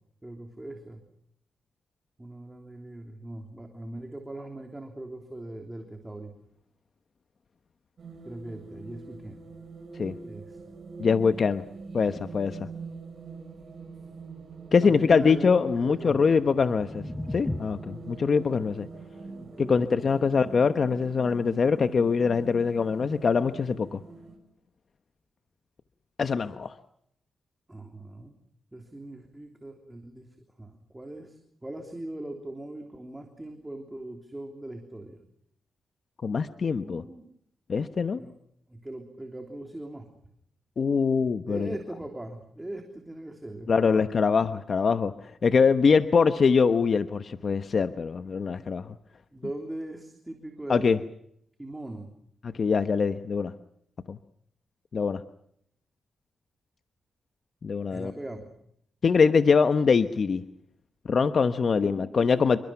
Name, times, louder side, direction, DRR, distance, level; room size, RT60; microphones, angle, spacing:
voice 1, 0.2-1.0 2.2-6.3 8.2-9.4 10.2-10.6 14.8-16.2 19.3-20.3 27.7-28.3 28.7-30.3 30.6-35.2 36.8-37.2 38.2-38.3 38.7-40.1 41.5-44.0 49.3-50.9 51.6-52.1 57.9-58.5 61.7-62.3, right 1 dB, 10° right, 4 dB, 3.3 m, -40 dB
sound 1, 8.0-24.4, right 4 dB, 55° right, 7.9 m, -44 dB
voice 2, 11.0-11.6 11.9-12.7 14.7-17.0 17.3-18.9 19.7-24.0 26.2-26.7 36.2-37.0 37.7-38.2 40.8-41.7 43.7-48.9 50.7-51.0 52.4-53.5 54.1-54.2 54.9-55.2 57.6-58.1 59.0-60.4 61.0-62.6, left 5 dB, 45° left, 10 dB, 1.0 m, -23 dB
sound 2, 16.3-22.4, left 1 dB, 15° left, 1.2 m, -40 dB
28.5 x 24.0 x 5.8 m, 0.70 s
cardioid pair, 120°, 0 cm